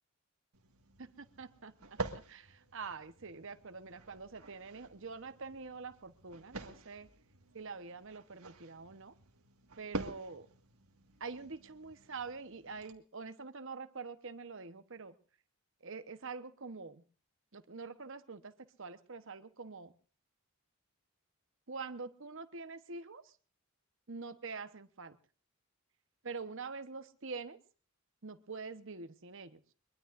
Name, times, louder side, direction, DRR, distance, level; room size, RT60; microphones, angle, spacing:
sound 1, 0.5-12.9, right 2 dB, 80° right, 1.8 m, -48 dB
voice 1, 1.2-2.0 2.3-7.1 7.5-9.1 9.8-10.5 11.2-15.1 15.8-17.0 17.5-18.5 18.8-19.9 21.7-23.2 24.1-25.2 26.2-27.6 28.2-29.6, right 4 dB, 60° right, 10 dB, 1.1 m, -45 dB
23.0 x 22.5 x 2.6 m, 0.40 s
head